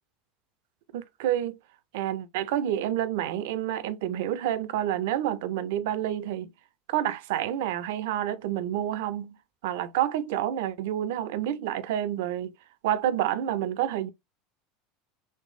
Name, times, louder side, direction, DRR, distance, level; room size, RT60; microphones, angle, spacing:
voice 1, 0.9-1.6 1.9-6.5 6.9-9.4 9.6-12.5 12.8-14.1, right 11 dB, 60° right, 0.3 m, -28 dB
3.3 x 3.1 x 2.4 m
figure-of-eight pair, 75°, 0 cm